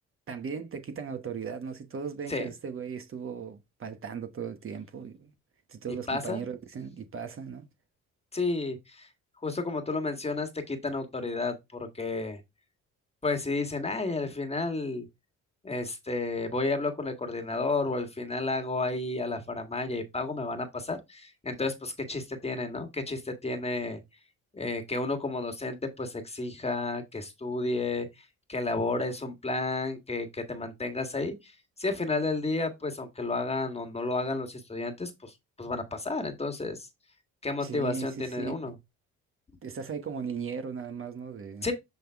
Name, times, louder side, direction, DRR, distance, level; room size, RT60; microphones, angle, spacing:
voice 1, 0.3-5.3 5.7-7.7 37.6-38.5 39.6-41.7, right 6 dB, 45° right, 1.1 m, -37 dB
voice 2, 6.1-6.4 8.3-9.1 9.4-12.4 13.2-15.1 15.6-24.0 24.5-36.9 37.4-38.7 41.6-41.7, left 3 dB, 20° left, 1.6 m, -32 dB
7.4 x 3.8 x 3.5 m
cardioid pair, 90°, 30 cm